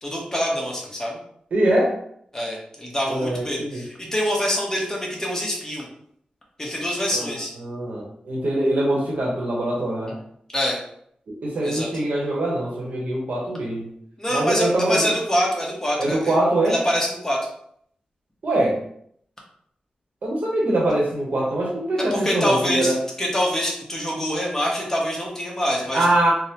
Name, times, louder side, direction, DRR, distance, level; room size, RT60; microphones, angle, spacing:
voice 1, 0.0-1.2 2.3-5.9 6.6-7.5 10.5-10.8 11.6-11.9 14.2-16.4 16.6-17.5 22.1-26.1, equal, 15° left, -2 dB, 0.9 m, -25 dB
voice 2, 1.5-1.9 3.1-3.8 7.1-10.2 11.4-13.9 14.3-15.1 16.0-16.8 18.4-18.8 20.2-23.0 25.9-26.3, right 1 dB, 70° right, -3 dB, 0.9 m, -23 dB
3.5 x 2.1 x 2.8 m, 0.67 s
cardioid pair, 55°, 3 cm